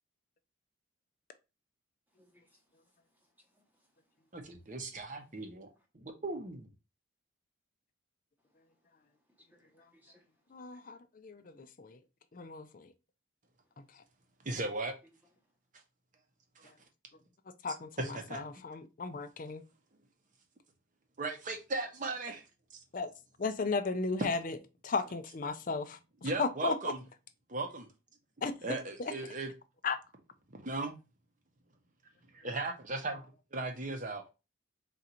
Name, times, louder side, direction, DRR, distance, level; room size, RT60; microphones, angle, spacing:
voice 1, 2.1-2.8 3.1-3.9 5.8-5.9 9.4-10.3 10.7-10.8, equal, 10° right, 0.9 m, -67 dB
voice 2, 4.3-5.7 5.9-6.7 14.4-14.9 16.6-16.7 18.0-18.4 21.2-22.5 22.7-22.8 25.4-25.5 26.2-27.0 27.5-27.9 28.6-29.5 30.5-31.0 32.3-34.2, right 2 dB, 40° right, 0.8 m, -37 dB
voice 3, 10.5-12.0 12.3-12.9 13.8-13.9 17.6-19.6 22.9-23.1 23.4-24.6 24.8-26.9 28.4-28.5 29.0-29.1 29.8-30.0, left 4 dB, 40° left, 0.4 m, -35 dB
3.9 x 2.5 x 4.3 m
head